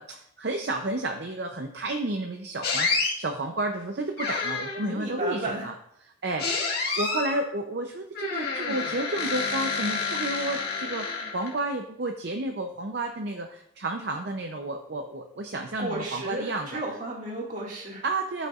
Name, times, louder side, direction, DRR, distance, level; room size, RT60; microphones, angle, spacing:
voice 1, 0.0-5.7 6.2-6.5 7.0-16.8 18.0-18.5, right 2 dB, 55° right, 4 dB, 0.6 m, -31 dB
sound 1, 2.6-3.1 4.2-4.9 6.4-7.4 8.1-11.6, left 4 dB, 50° left, 1.9 m, -29 dB
voice 2, 4.8-5.7 15.8-18.0, right 1 dB, 40° right, -2 dB, 2.0 m, -33 dB
13.0 x 5.5 x 2.4 m, 0.75 s
head